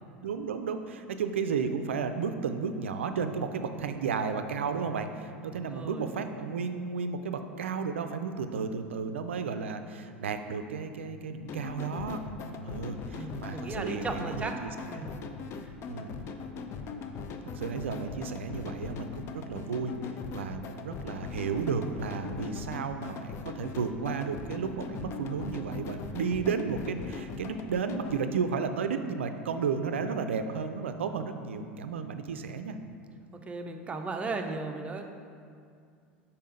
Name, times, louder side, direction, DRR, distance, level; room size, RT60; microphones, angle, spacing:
voice 1, 0.2-14.7 15.0-15.1 15.9-16.1 17.5-19.9 20.3-32.8, right 5 dB, 80° right, 8 dB, 0.4 m, -33 dB
voice 2, 5.5-6.1 13.1-14.6 14.9-15.2 33.4-35.0, right 3 dB, 20° right, 4 dB, 0.6 m, -36 dB
sound 1, 11.5-28.1, left 5 dB, 40° left, 0.5 m, -40 dB
5.5 x 4.3 x 5.0 m, 2.3 s
hypercardioid pair, 80°, 7 cm